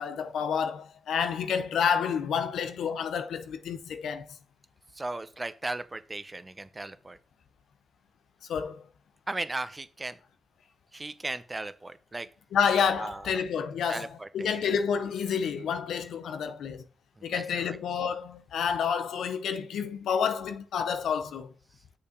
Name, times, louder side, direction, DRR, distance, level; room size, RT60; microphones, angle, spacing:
voice 1, 0.0-4.3 8.5-8.8 12.5-16.8 17.2-21.5, left 7 dB, 85° left, 0.8 m, -29 dB
voice 2, 4.9-7.2 9.3-10.2 10.9-12.3 13.0-13.4 13.9-14.5 17.2-17.8, right 2 dB, 25° right, 0.8 m, -37 dB
6.6 x 5.6 x 5.1 m
cardioid pair, 65°, 0 cm